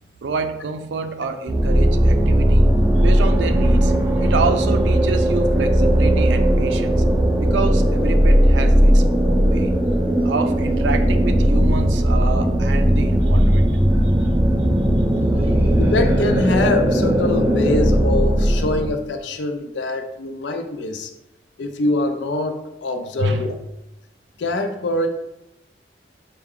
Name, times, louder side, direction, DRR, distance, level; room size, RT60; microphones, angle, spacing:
voice 1, 0.2-2.7 3.0-7.0 7.4-9.7 10.2-13.8 14.2-14.3 15.1-15.6 23.2-23.6, right 4 dB, 85° right, 7 dB, 0.4 m, -28 dB
sound 1, 1.5-18.9, equal, 10° right, 0.4 m, -17 dB
voice 2, 15.8-21.1 21.6-23.5 24.4-25.1, left 2 dB, 80° left, 7 dB, 0.5 m, -24 dB
4.6 x 2.2 x 3.6 m, 0.88 s
head